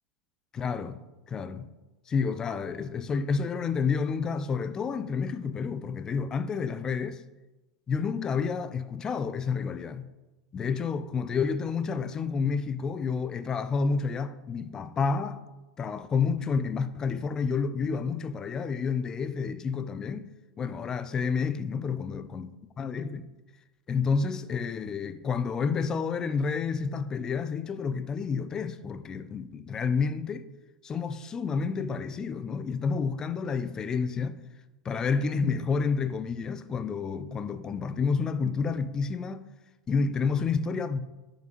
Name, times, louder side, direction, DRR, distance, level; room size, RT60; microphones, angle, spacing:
voice 1, 0.5-1.0 1.3-1.7 2.1-7.2 7.9-10.1 10.5-15.4 15.8-20.3 20.6-22.5 22.8-23.3 23.9-30.4 30.8-34.4 34.8-39.5 39.9-41.0, left 5 dB, 25° left, 0.4 m, -29 dB
6.3 x 5.3 x 3.0 m
figure-of-eight pair, 85°, 3 cm